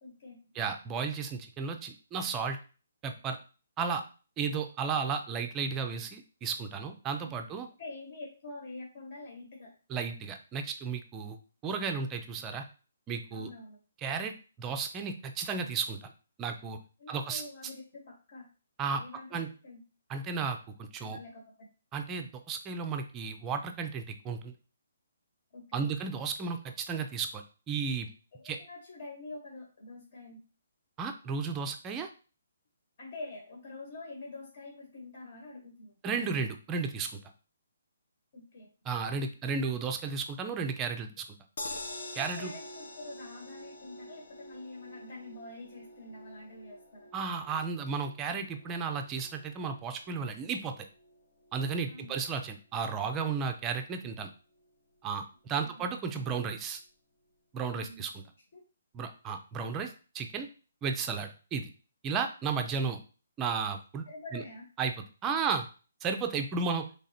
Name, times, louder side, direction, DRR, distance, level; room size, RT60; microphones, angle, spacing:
voice 1, 0.0-0.5 7.2-7.5 7.8-9.7 13.3-13.8 17.0-18.5 19.0-19.4 19.6-19.8 21.0-21.4 25.5-25.9 28.3-30.4 33.0-35.9 38.3-38.7 42.2-47.1 51.9-52.2 55.5-55.9 57.7-58.0 58.5-58.6 62.6-62.7 64.1-64.6 65.3-65.4, left 2 dB, 50° left, -1 dB, 1.3 m, -46 dB
voice 2, 0.5-2.6 3.0-3.4 3.8-4.0 4.4-7.7 9.9-11.4 11.6-12.6 13.1-13.5 14.0-16.1 16.4-16.8 17.1-17.4 18.8-19.0 19.3-19.5 20.1-21.2 21.9-24.5 25.7-28.1 28.4-28.6 31.0-32.1 36.0-37.1 38.9-41.2 42.1-42.5 47.1-50.7 51.5-54.3 55.0-56.8 57.5-58.1 58.9-60.5 60.8-61.7 62.0-63.0 63.4-64.1 64.3-64.4 64.8-64.9 65.2-65.6 66.0-66.9, right 5 dB, 15° right, 6 dB, 0.5 m, -33 dB
sound 1, 41.6-53.8 54.2-54.3 54.6-54.7, left 1 dB, 65° left, 1.0 m, -47 dB
3.7 x 3.4 x 4.2 m, 0.36 s
hypercardioid pair, 170°, 0 cm